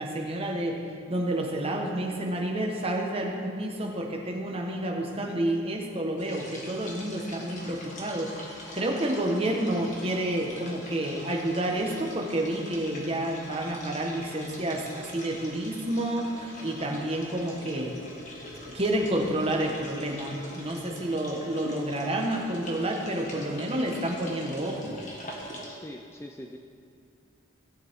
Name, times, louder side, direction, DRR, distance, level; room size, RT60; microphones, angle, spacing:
voice 1, 0.0-18.0 18.7-25.0, right 1 dB, 30° right, 0 dB, 1.3 m, -29 dB
sound 1, 6.2-25.7, left 1 dB, 40° left, 1.7 m, -43 dB
voice 2, 25.7-26.6, left 1 dB, 10° left, 2 dB, 0.4 m, -42 dB
17.5 x 8.4 x 3.7 m, 2.4 s
head